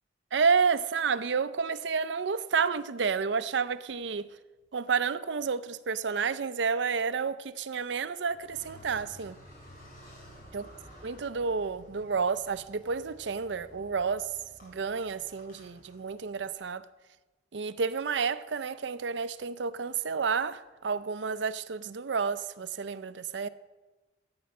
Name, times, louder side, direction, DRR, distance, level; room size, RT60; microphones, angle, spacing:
voice 1, 0.3-4.3 4.7-9.4 10.5-10.6 11.0-14.3 14.6-16.8 17.5-23.5, right 5 dB, 80° right, 0.5 m, -30 dB
Car, 8.3-16.5, equal, 50° left, 4.0 m, -53 dB
14.5 x 8.8 x 5.4 m
head